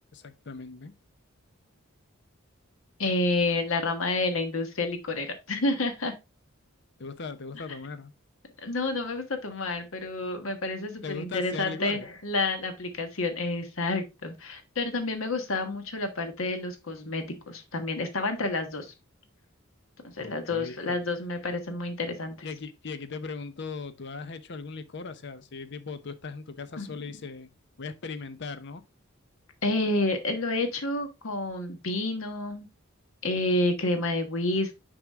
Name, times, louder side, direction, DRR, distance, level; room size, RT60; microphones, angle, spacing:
voice 1, 0.1-0.9 7.0-8.1 11.0-12.1 20.2-21.0 22.4-27.5 27.8-28.8, left 4 dB, 60° left, 0.8 m, -38 dB
voice 2, 3.0-6.1 8.6-18.9 20.0-22.4 26.8-27.0 29.6-32.7 33.2-34.7, left 2 dB, 80° left, 1.4 m, -29 dB
6.1 x 4.9 x 3.6 m
head